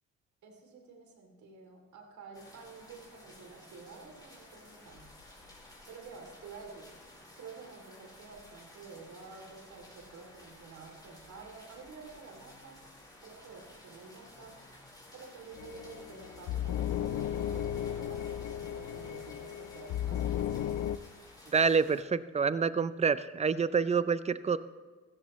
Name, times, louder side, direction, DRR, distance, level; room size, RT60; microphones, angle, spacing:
voice 1, 0.4-5.1 5.9-6.9 7.4-12.8 13.2-14.6 15.1-20.5, right 4 dB, 70° right, 2 dB, 3.1 m, -50 dB
sound 1, 2.3-22.0, left 1 dB, 15° left, 4.5 m, -54 dB
sound 2, 15.6-21.0, left 10 dB, 75° left, 0.5 m, -35 dB
voice 2, 21.5-24.6, right 5 dB, 20° right, 15 dB, 0.5 m, -27 dB
15.5 x 13.5 x 3.2 m, 1.4 s
cardioid pair, 90°, 30 cm